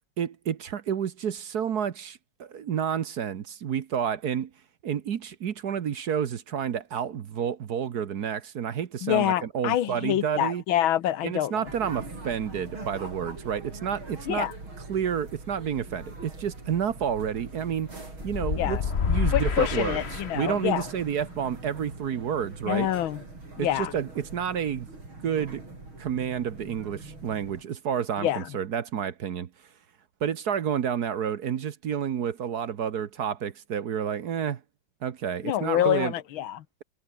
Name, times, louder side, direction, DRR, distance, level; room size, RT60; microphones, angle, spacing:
voice 1, 0.2-4.5 4.8-10.6 11.2-14.5 14.9-17.9 18.2-18.8 19.1-22.9 23.6-24.9 25.2-25.6 26.0-29.5 30.2-34.6 35.0-36.1, right 8 dB, 55° right, 1.5 m, -30 dB
voice 2, 9.0-11.6 14.3-14.5 18.6-18.8 19.3-20.9 22.7-23.2 23.6-23.9 28.2-28.5 35.4-36.6, left 12 dB, 80° left, 1.8 m, -26 dB
sound 1, 11.6-27.6, right 2 dB, 80° right, 8.2 m, -43 dB
sound 2, 18.2-20.8, left 6 dB, 35° left, 1.4 m, -28 dB
omnidirectional pair, 2.2 m